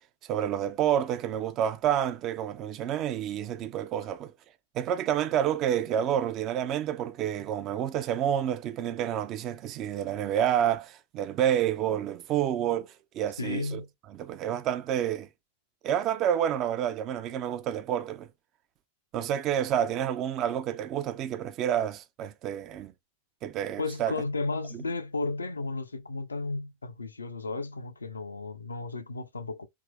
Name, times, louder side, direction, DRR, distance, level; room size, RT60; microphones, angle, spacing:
voice 1, 0.3-4.3 4.7-13.8 14.2-15.3 15.8-18.3 19.1-22.9 23.4-24.1 24.7-24.8, right 10 dB, 35° right, 0.5 m, -29 dB
voice 2, 13.4-13.9 23.8-29.7, left 3 dB, 75° left, 0.6 m, -34 dB
3.6 x 2.7 x 3.3 m
figure-of-eight pair, 90°, 0 cm